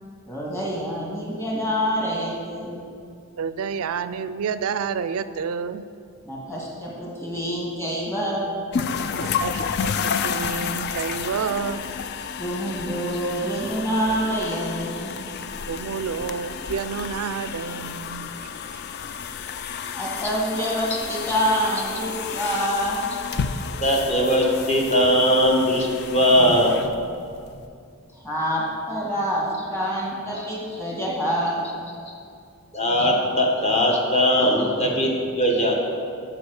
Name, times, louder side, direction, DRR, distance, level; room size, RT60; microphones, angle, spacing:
voice 1, 0.3-2.7 6.2-8.5 12.4-15.2 19.9-23.0 28.1-31.7, equal, 10° left, -4 dB, 1.8 m, -26 dB
voice 2, 3.4-5.9 9.2-11.8 15.7-18.3, right 6 dB, 85° right, 13 dB, 0.4 m, -29 dB
sound 1, 8.7-27.6, left 6 dB, 50° left, 0.3 m, -31 dB
voice 3, 23.8-26.8 30.3-30.5 32.7-35.8, equal, 30° left, -1 dB, 1.3 m, -20 dB
7.1 x 6.7 x 6.5 m, 2.4 s
head